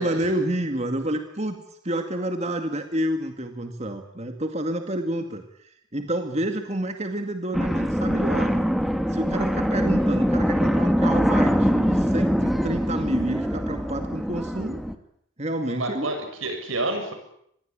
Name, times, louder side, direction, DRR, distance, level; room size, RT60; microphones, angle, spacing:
voice 1, 0.0-8.6 9.1-14.8 15.4-16.2, right 1 dB, 35° right, 5 dB, 2.1 m, -29 dB
sound 1, 7.5-15.0, equal, ahead, 1.6 m, -23 dB
voice 2, 15.7-17.1, right 2 dB, 85° right, 6 dB, 7.7 m, -29 dB
27.0 x 20.5 x 8.8 m, 0.72 s
head